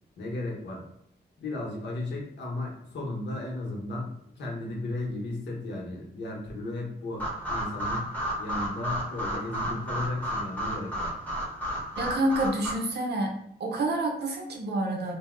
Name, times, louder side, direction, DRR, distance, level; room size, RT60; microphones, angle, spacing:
voice 1, 0.2-0.9 1.4-8.1 8.4-11.2, left 2 dB, 85° left, -2 dB, 0.9 m, -35 dB
sound 1, 7.2-12.7, equal, 10° left, 0.8 m, -32 dB
voice 2, 12.0-13.3 13.6-15.2, right 1 dB, 70° right, 1 dB, 0.7 m, -28 dB
2.8 x 2.0 x 3.6 m, 0.75 s
wide cardioid pair, 165°, 18 cm